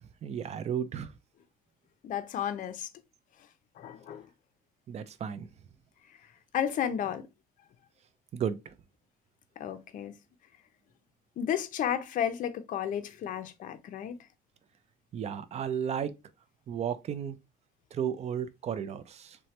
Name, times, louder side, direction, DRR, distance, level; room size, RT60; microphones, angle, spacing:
voice 1, 0.2-1.1 4.9-5.5 8.3-8.6 15.1-16.1 16.7-17.4 17.9-19.4, right 8 dB, 40° right, 0.4 m, -33 dB
voice 2, 2.0-2.9 3.8-4.3 6.5-7.3 9.6-10.1 11.4-14.2, left 9 dB, 50° left, 0.5 m, -32 dB
3.1 x 2.1 x 2.8 m
cardioid pair, 110°, 17 cm